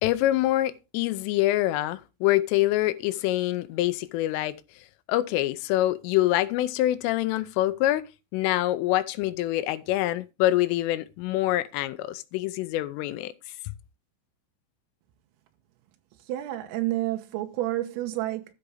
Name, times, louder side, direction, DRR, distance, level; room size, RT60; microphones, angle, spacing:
voice 1, 0.0-4.6 5.1-8.0 8.3-13.3, left 15 dB, 85° left, 3.1 m, -25 dB
voice 2, 16.3-18.4, right 15 dB, 90° right, 3.7 m, -29 dB
13.0 x 6.0 x 4.9 m
omnidirectional pair, 5.8 m